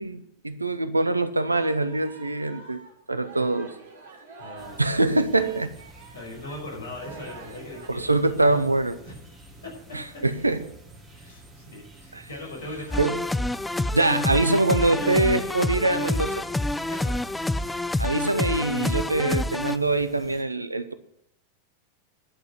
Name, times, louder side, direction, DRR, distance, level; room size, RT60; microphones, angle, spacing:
voice 1, 0.0-2.8 3.1-3.7 4.8-5.7 7.9-9.0 9.9-10.6 12.1-12.3 13.0-13.2 13.9-16.4 18.0-20.9, right 2 dB, 80° right, 12 dB, 0.8 m, -24 dB
Singing, 1.3-7.9, right 4 dB, 65° right, 3.0 m, -47 dB
voice 2, 4.4-4.8 6.1-8.1 8.4-8.6 9.0-9.1 9.6-9.7 10.1-10.2 11.1-13.1 14.3-14.4 14.6-15.6 15.9-16.1 16.9-17.1, left 2 dB, 60° left, -1 dB, 5.8 m, -39 dB
sound 1, 4.6-20.4, right 1 dB, 10° right, 3.3 m, -49 dB
sound 2, 12.9-19.8, left 1 dB, 5° left, 0.4 m, -27 dB
11.0 x 6.4 x 7.7 m, 0.72 s
figure-of-eight pair, 90°, 0 cm